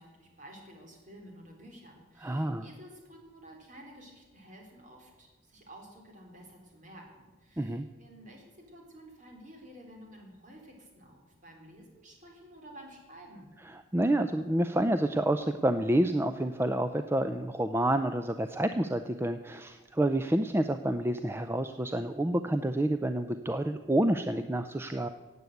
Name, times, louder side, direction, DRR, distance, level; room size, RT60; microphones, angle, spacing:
voice 1, 0.0-13.5, right 1 dB, 40° right, 1 dB, 3.7 m, -52 dB
voice 2, 2.2-2.7 7.6-7.9 13.7-25.1, right 1 dB, 15° right, 9 dB, 0.4 m, -28 dB
16.5 x 8.4 x 7.9 m, 1.3 s
head